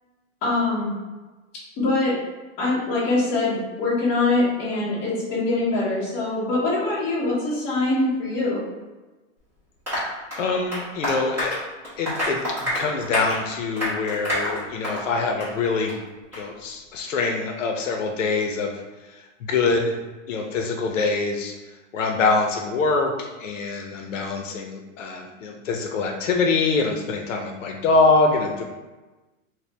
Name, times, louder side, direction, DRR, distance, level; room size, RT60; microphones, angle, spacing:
voice 1, 0.4-1.0 1.8-2.1 2.6-8.6, left 2 dB, 20° left, -9 dB, 1.0 m, -23 dB
Applause, 9.9-15.1 15.4-15.5 15.9-16.0 16.3-16.4, equal, 5° right, 0.9 m, -28 dB
voice 2, 10.4-11.6 12.0-16.0 16.3-20.0 20.3-21.5 21.9-28.6, left 3 dB, 75° left, 1 dB, 0.6 m, -24 dB
4.3 x 2.1 x 3.3 m, 1.2 s
supercardioid pair, 180°, 38 cm